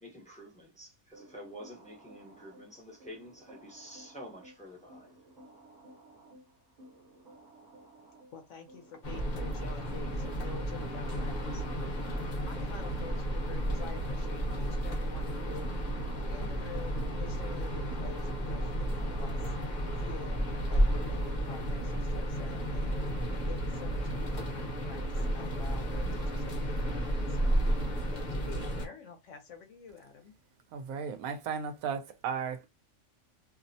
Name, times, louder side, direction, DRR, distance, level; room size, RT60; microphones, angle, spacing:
voice 1, 0.0-5.1, equal, 10° left, 0.5 m, -48 dB
sound 1, 1.1-10.6, right 1 dB, 40° right, 0.7 m, -56 dB
voice 2, 8.3-11.8 12.4-15.7 16.3-19.5 20.0-20.4 20.7-23.0 23.5-27.6 28.1-30.3, left 6 dB, 70° left, 0.9 m, -48 dB
sound 2, 9.0-28.9, equal, 40° left, 0.7 m, -32 dB
voice 3, 30.7-32.7, right 6 dB, 85° right, 1.1 m, -35 dB
2.7 x 2.0 x 2.6 m
omnidirectional pair, 1.5 m